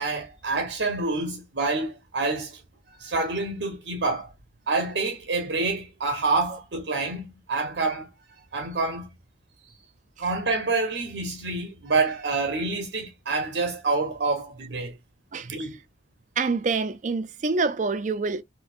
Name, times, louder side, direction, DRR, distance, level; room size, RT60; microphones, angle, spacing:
voice 1, 0.0-2.6 3.0-4.3 4.7-8.1 8.5-9.1 10.2-14.9 15.4-15.8, right 3 dB, 80° right, 0.7 m, -27 dB
voice 2, 15.3-15.7 16.4-18.4, right 4 dB, 45° right, 0.4 m, -26 dB
4.1 x 2.2 x 2.4 m
head